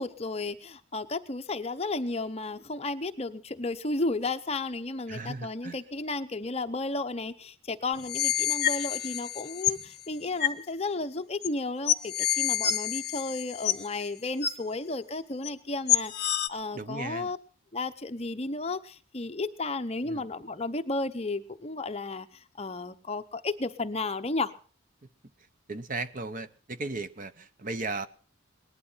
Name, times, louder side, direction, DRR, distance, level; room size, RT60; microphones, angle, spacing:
voice 1, 0.0-17.4 17.7-24.5, left 2 dB, 30° left, 9 dB, 0.8 m, -33 dB
voice 2, 5.1-5.8 16.7-17.3 20.0-20.3 25.7-28.1, right 3 dB, 40° right, 13 dB, 0.8 m, -36 dB
sound 1, 8.0-9.8 10.4-10.6 11.4-11.5 11.9-14.0 14.4-14.5 15.4-15.5 15.9-16.5, left 11 dB, 50° left, 1.0 m, -27 dB
19.0 x 11.5 x 5.6 m, 0.42 s
head